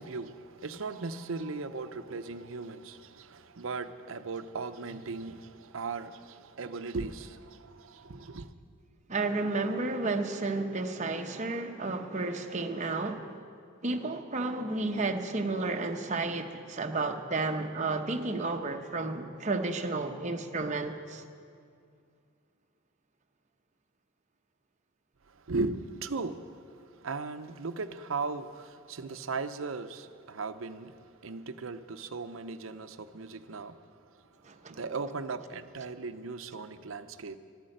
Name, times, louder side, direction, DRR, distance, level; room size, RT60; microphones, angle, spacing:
voice 1, 0.0-8.5 25.3-33.8 34.1-34.2 34.7-37.4, right 4 dB, 70° right, 0.7 m, -37 dB
voice 2, 9.1-13.3 13.8-21.2 34.4-34.8, right 3 dB, 35° right, 0.9 m, -32 dB
13.0 x 11.5 x 7.8 m
head